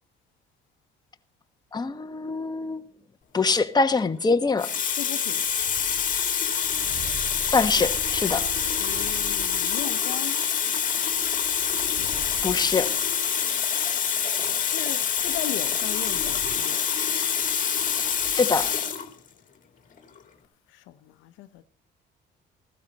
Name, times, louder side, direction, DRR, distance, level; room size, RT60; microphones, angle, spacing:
voice 1, 1.7-2.9 3.3-4.7 7.5-8.5 12.4-12.9 18.3-18.7, left 4 dB, 20° left, 1.2 m, -24 dB
Water tap faucet, 3.8-4.0 4.6-19.1 20.0-20.2, left 7 dB, 45° left, 2.1 m, -26 dB
voice 2, 4.9-5.5 8.8-10.4 14.6-16.8 20.7-21.6, left 13 dB, 85° left, 0.9 m, -37 dB
sound 1, 5.3-6.9 7.6-13.1 13.7-14.1 15.1-19.1, right 3 dB, 75° right, 4.7 m, -47 dB
sound 2, 6.6-9.6, right 7 dB, 40° right, 1.0 m, -40 dB
15.0 x 13.0 x 4.1 m
cardioid pair, 90°, 19 cm